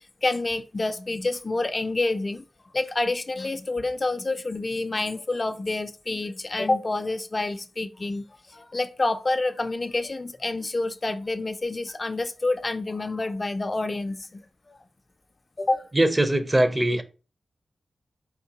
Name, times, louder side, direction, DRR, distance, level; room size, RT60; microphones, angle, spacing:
voice 1, 0.2-2.4 2.7-14.4 14.7-14.8 15.6-15.9, left 2 dB, 35° left, 0.3 m, -28 dB
voice 2, 15.9-17.0, right 1 dB, 20° right, 0.5 m, -21 dB
4.3 x 3.6 x 2.7 m
cardioid pair, 70°, 0 cm